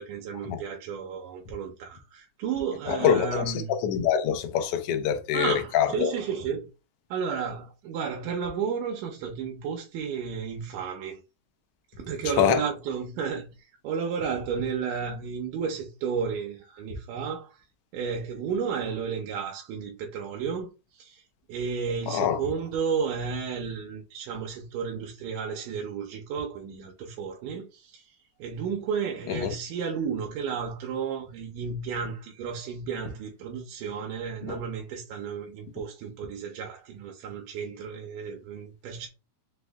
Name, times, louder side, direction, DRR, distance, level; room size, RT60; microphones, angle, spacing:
voice 1, 0.0-3.7 5.3-6.7 7.1-11.2 12.0-17.6 17.9-21.2 21.5-28.1 28.4-39.1, right 6 dB, 90° right, 2.3 m, -32 dB
voice 2, 2.9-3.5 3.8-6.1 12.4-12.6 22.1-22.4 29.3-29.5, left 9 dB, 80° left, 1.3 m, -24 dB
5.9 x 2.1 x 3.4 m
omnidirectional pair, 3.6 m